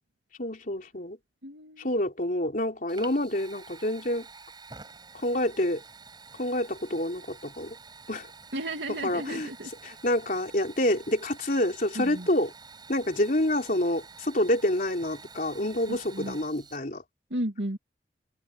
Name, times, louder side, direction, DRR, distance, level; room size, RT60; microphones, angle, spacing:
voice 1, 0.4-1.2 1.8-4.3 5.1-5.8 6.3-7.8 8.1-8.3 9.0-9.5 9.8-12.5 12.9-17.0, left 1 dB, 50° left, 3.8 m, -27 dB
voice 2, 1.4-2.0 8.5-9.7 11.9-12.3 15.9-16.4 17.3-17.8, right 1 dB, 75° right, 2.7 m, -34 dB
Fire, 2.9-16.8, right 4 dB, 25° right, 7.0 m, -49 dB
open air
head